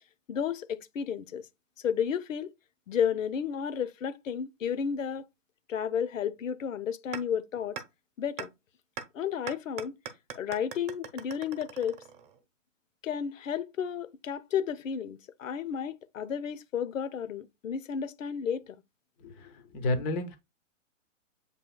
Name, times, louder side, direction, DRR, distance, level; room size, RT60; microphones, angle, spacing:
voice 1, 0.3-1.5 1.8-2.5 2.9-5.2 5.7-7.8 8.2-8.5 9.1-9.9 10.3-12.0 13.0-18.8, left 8 dB, 90° left, 0.7 m, -32 dB
sound 1, 7.1-7.2 7.8-7.9 8.4-8.5 9.0-9.1 9.5-12.4, right 7 dB, 30° right, 0.8 m, -40 dB
voice 2, 19.2-20.4, left 2 dB, 15° left, 0.4 m, -31 dB
7.7 x 2.8 x 2.2 m
hypercardioid pair, 135°, 38 cm